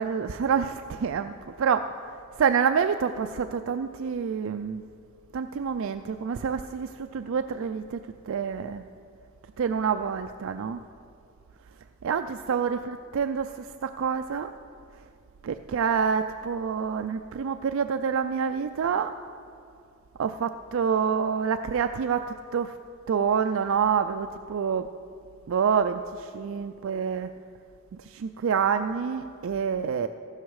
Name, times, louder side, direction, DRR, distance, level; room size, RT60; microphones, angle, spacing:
voice 1, 0.0-1.9 2.4-4.8 5.3-8.0 8.3-8.8 9.6-10.8 12.0-14.5 15.4-19.1 20.2-22.8 23.1-24.9 25.5-27.3 28.1-30.1, right 6 dB, 65° right, 8 dB, 0.4 m, -27 dB
14.5 x 12.0 x 4.8 m, 2.5 s
head